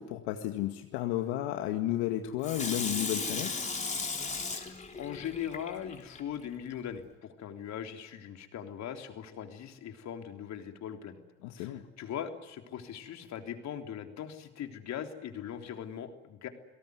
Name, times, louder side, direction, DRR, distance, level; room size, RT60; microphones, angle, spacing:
voice 1, 0.0-3.6 11.4-11.8, left 13 dB, 80° left, 5 dB, 2.0 m, -33 dB
Water tap faucet / Sink (filling or washing), 2.4-6.2 6.7-6.8, left 4 dB, 20° left, 3.6 m, -36 dB
voice 2, 4.5-11.2 11.6-11.7 12.0-16.5, left 9 dB, 50° left, 5 dB, 3.4 m, -40 dB
29.0 x 18.0 x 9.5 m, 1.1 s
supercardioid pair, 95°, 34 cm